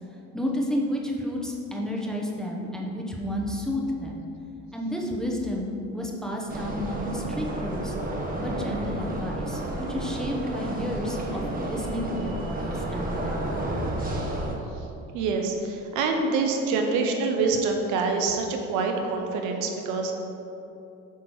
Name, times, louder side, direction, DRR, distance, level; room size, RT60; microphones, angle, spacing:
voice 1, 0.3-4.2 4.7-7.9 8.4-9.6 9.9-13.5, left 1 dB, ahead, -2 dB, 0.8 m, -31 dB
sound 1, 6.5-14.5, right 1 dB, 30° right, 1.0 m, -31 dB
voice 2, 15.1-20.1, right 4 dB, 80° right, 3 dB, 1.0 m, -26 dB
8.2 x 3.1 x 6.2 m, 2.9 s
cardioid pair, 120°, 30 cm